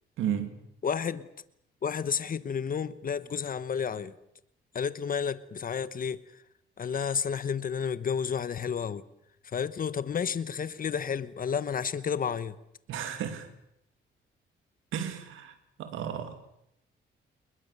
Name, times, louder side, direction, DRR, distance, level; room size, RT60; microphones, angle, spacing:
voice 1, 0.2-0.5 12.9-13.5 14.9-15.5 15.8-16.3, right 9 dB, 85° right, 2.8 m, -33 dB
voice 2, 0.8-1.3 1.8-4.2 4.7-6.2 6.8-9.0 9.5-12.6, left 7 dB, 45° left, 1.2 m, -31 dB
29.0 x 21.0 x 6.9 m
cardioid pair, 90°, 20 cm